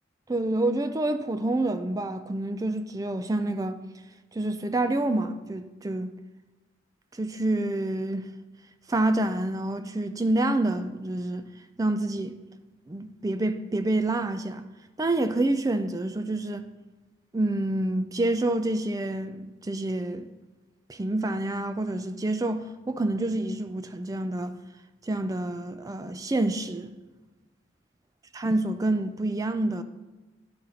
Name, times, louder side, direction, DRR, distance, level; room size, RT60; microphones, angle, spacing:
voice 1, 0.3-3.8 4.3-6.1 7.1-8.3 8.9-11.5 11.8-12.4 12.9-14.6 15.0-16.7 17.3-20.3 20.9-24.5 25.0-26.9 28.4-29.8, right 2 dB, 20° right, 0.3 m, -27 dB
11.0 x 4.0 x 4.2 m
head